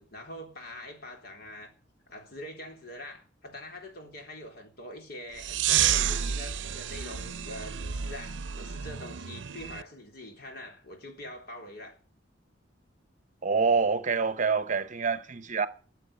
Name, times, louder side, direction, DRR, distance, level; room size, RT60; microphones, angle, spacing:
voice 1, 0.0-1.7 2.1-12.0, left 1 dB, 55° left, 3.9 m, -44 dB
sound 1, 5.4-9.8, right 9 dB, 75° right, 0.6 m, -30 dB
voice 2, 13.4-15.7, right 5 dB, 40° right, 0.9 m, -26 dB
14.0 x 7.8 x 8.4 m
head